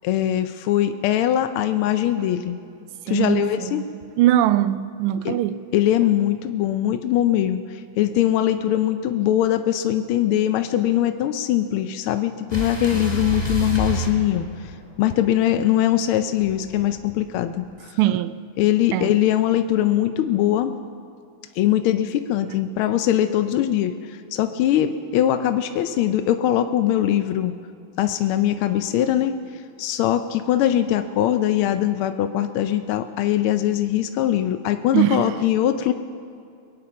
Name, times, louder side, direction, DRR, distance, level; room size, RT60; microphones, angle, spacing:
voice 1, 0.0-2.6 3.1-3.8 5.2-5.4 5.7-14.7 15.0-18.0 18.6-20.8 21.5-27.5 28.0-35.9, left 12 dB, 80° left, 1.5 m, -21 dB
voice 2, 3.1-3.9 4.2-5.6 18.0-18.4 18.9-19.2 34.9-35.3, right 13 dB, 85° right, 1.5 m, -21 dB
sound 1, 12.5-15.0 16.4-17.7, right 3 dB, 10° left, 2.1 m, -29 dB
22.5 x 9.4 x 5.8 m
omnidirectional pair, 2.4 m